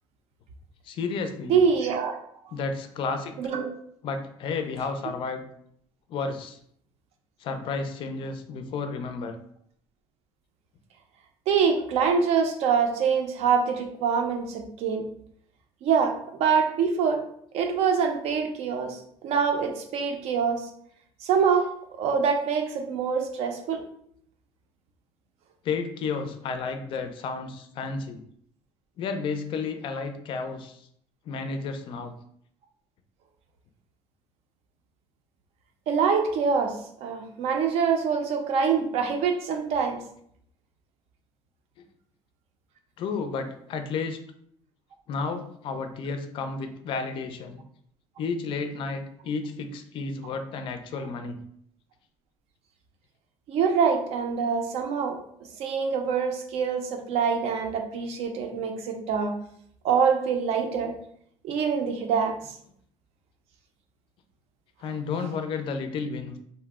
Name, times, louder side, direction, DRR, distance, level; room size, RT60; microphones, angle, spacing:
voice 1, 0.8-1.6 2.5-3.5 4.0-5.5 6.1-6.6 7.4-9.4 25.6-28.2 29.0-30.9 31.3-32.1 43.0-44.2 45.1-47.6 48.2-51.4 64.8-66.4, left 4 dB, 50° left, 7 dB, 0.4 m, -32 dB
voice 2, 1.5-2.1 3.4-3.7 11.5-15.0 15.8-17.2 17.5-20.7 21.2-23.8 35.9-40.0 53.5-55.2 55.6-59.3 59.8-60.9 61.4-62.3, right 6 dB, 70° right, 4 dB, 0.5 m, -25 dB
2.6 x 2.0 x 3.4 m, 0.68 s
cardioid pair, 150°, 11 cm